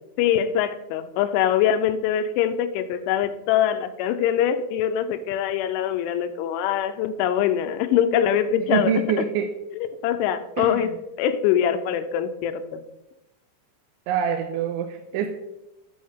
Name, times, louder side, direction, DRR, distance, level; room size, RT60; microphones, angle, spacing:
voice 1, 0.2-9.1 9.8-10.9 11.2-12.8, left 9 dB, 85° left, 10 dB, 3.0 m, -23 dB
voice 2, 8.7-9.5 10.6-10.8 14.1-15.3, right 7 dB, 80° right, 6 dB, 2.9 m, -25 dB
11.5 x 8.6 x 3.7 m, 0.96 s
omnidirectional pair, 5.6 m